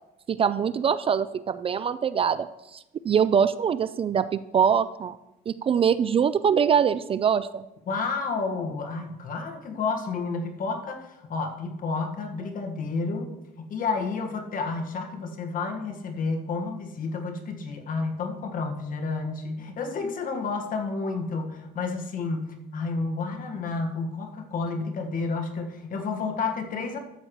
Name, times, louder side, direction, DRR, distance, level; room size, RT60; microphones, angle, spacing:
voice 1, 0.3-5.2 5.5-7.6, right 7 dB, 35° right, 14 dB, 0.3 m, -23 dB
voice 2, 7.9-13.3 13.6-27.0, left 4 dB, 55° left, 4 dB, 1.6 m, -30 dB
13.0 x 7.9 x 3.1 m, 0.91 s
cardioid pair, 110°, 17 cm